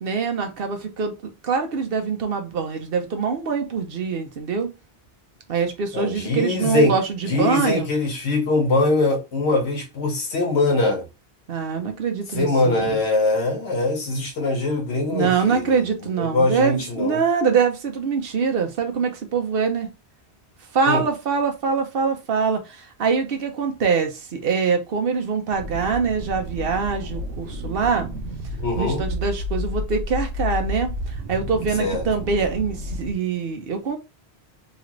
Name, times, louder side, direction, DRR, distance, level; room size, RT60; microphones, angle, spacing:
voice 1, 0.0-4.7 5.5-7.9 11.5-13.0 15.1-19.9 20.7-28.1 28.8-34.0, right 5 dB, 65° right, 0.8 m, -24 dB
voice 2, 5.9-6.9 7.3-11.1 12.3-15.8 16.2-17.2 20.9-21.0 28.6-29.0 31.8-32.0, left 2 dB, 80° left, 1.2 m, -22 dB
sound 1, 25.5-33.1, left 1 dB, 90° right, 1.0 m, -31 dB
3.0 x 2.5 x 3.0 m
omnidirectional pair, 1.1 m